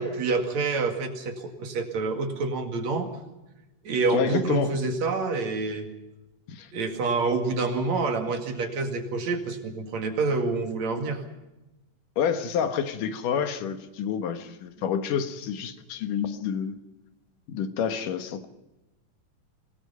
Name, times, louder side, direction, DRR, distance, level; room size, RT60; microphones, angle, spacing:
voice 1, 0.0-3.1 3.8-5.9 6.7-11.2, right 3 dB, 60° right, 5 dB, 3.3 m, -27 dB
voice 2, 4.1-4.7 6.5-6.7 12.2-16.8 17.5-18.5, left 7 dB, 80° left, 8 dB, 3.0 m, -28 dB
25.5 x 18.5 x 5.6 m, 0.99 s
omnidirectional pair, 3.7 m